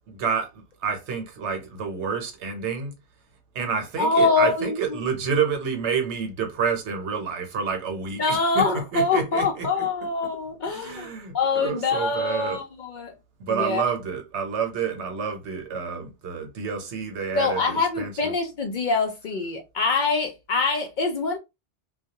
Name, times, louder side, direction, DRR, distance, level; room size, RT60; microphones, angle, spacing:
voice 1, 0.1-2.9 3.5-9.7 10.7-12.6 13.4-18.3, right 6 dB, 75° right, 1.0 m, -29 dB
voice 2, 4.0-4.8 8.2-13.1 13.5-13.8 17.4-21.4, left 3 dB, 60° left, 0.5 m, -24 dB
2.2 x 2.1 x 2.8 m
omnidirectional pair, 1.2 m